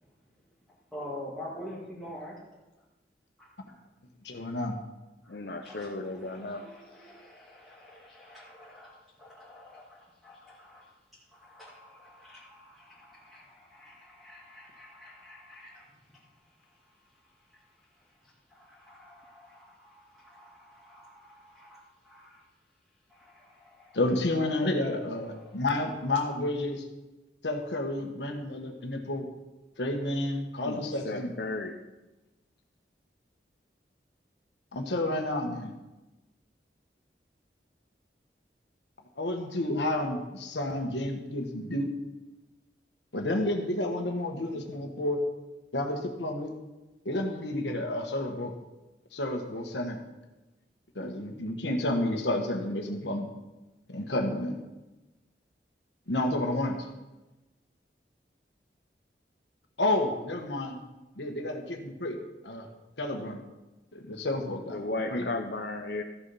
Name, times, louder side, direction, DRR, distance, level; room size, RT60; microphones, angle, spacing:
voice 1, 0.9-2.4 3.4-3.5 5.2-5.4 5.6-10.8 11.3-17.7 17.9-22.4 23.1-24.0 25.3-25.5, left 1 dB, ahead, -8 dB, 2.2 m, -48 dB
voice 2, 4.2-4.8 23.9-26.8 27.4-29.3 29.8-31.3 34.7-35.7 39.2-41.9 43.1-45.2 45.7-46.6 47.0-48.5 49.1-50.0 50.9-53.3 53.9-54.5 56.1-56.8 59.8-60.8 61.2-62.7 63.0-63.4 63.9-65.3, left 1 dB, 80° left, 3 dB, 1.4 m, -30 dB
voice 3, 5.3-6.6 30.7-31.7 64.7-66.0, left 2 dB, 65° left, 2 dB, 0.7 m, -35 dB
14.0 x 7.1 x 5.6 m, 1.1 s
head